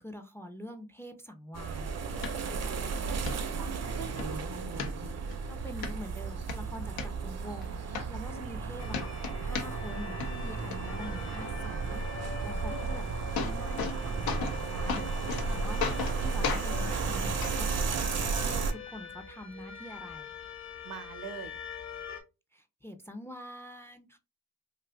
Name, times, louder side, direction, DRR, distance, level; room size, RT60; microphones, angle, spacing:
voice 1, 0.0-1.9 5.5-9.1 9.4-13.0 13.3-20.3 22.5-24.2, equal, 5° left, 6 dB, 0.4 m, -45 dB
sound 1, 1.5-18.7, right 4 dB, 45° right, 0.5 m, -34 dB
sound 2, 2.2-2.3 2.8-2.9 3.3-3.4 3.8-4.3 4.8-5.4 5.8-5.9 6.3-7.1 7.6-7.7 7.9-8.6 8.9-10.0 10.2-10.8 12.8-12.9 13.1-14.0 14.3-14.6 14.9-15.5 15.8-16.2 16.4-16.7 17.4-17.5 18.4-18.5, left 6 dB, 85° left, 0.6 m, -34 dB
voice 2, 3.0-4.9 12.6-12.9 20.8-21.5, right 6 dB, 80° right, 9 dB, 0.8 m, -45 dB
sound 3, 8.8-22.2, left 6 dB, 50° left, 0.9 m, -44 dB
2.6 x 2.4 x 3.4 m, 0.28 s
cardioid pair, 85°, 36 cm